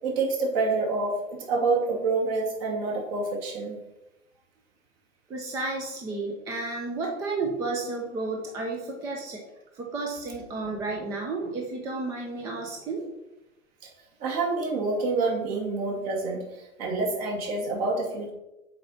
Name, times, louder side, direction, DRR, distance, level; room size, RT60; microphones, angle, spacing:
voice 1, 0.0-3.8 13.8-13.9 14.2-18.3, right 3 dB, 45° right, 0 dB, 2.4 m, -27 dB
voice 2, 5.3-9.4 9.7-13.0, right 3 dB, 10° right, 1 dB, 0.4 m, -32 dB
7.6 x 4.2 x 5.6 m, 0.99 s
hypercardioid pair, 120°, 41 cm